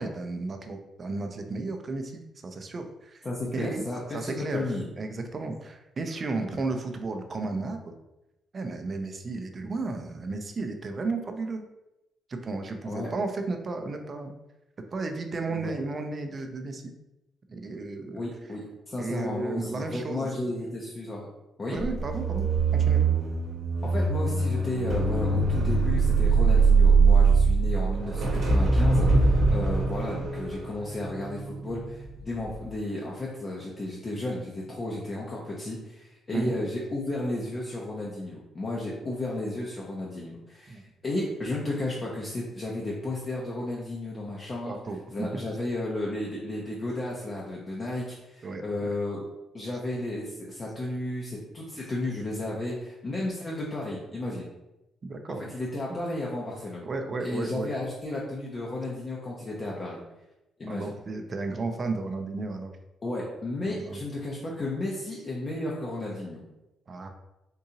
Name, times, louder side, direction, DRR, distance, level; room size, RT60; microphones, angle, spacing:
voice 1, 0.0-3.3 3.5-3.8 4.1-7.9 8.5-11.6 12.3-14.3 14.9-16.9 17.5-18.2 19.0-20.4 21.7-22.5 22.7-23.0 36.3-36.6 40.7-40.8 44.7-45.4 48.4-49.0 55.0-55.5 55.9-56.1 56.8-57.7 59.8-59.9 60.6-62.7 63.6-64.0 64.7-65.1 65.6-65.8 66.9-67.1, right 3 dB, 40° right, 5 dB, 0.4 m, -33 dB
voice 2, 3.2-4.9 12.8-13.1 15.5-15.7 18.1-21.3 21.6-21.8 23.8-44.8 45.1-49.2 49.5-54.5 55.5-56.9 57.2-60.0 60.6-60.9 63.0-66.4, left 2 dB, 35° left, -4 dB, 0.6 m, -33 dB
sound 1, 21.8-32.1 32.4-32.7, right 4 dB, 55° right, 1.0 m, -22 dB
3.7 x 2.7 x 2.8 m, 0.95 s
cardioid pair, 90°, 0 cm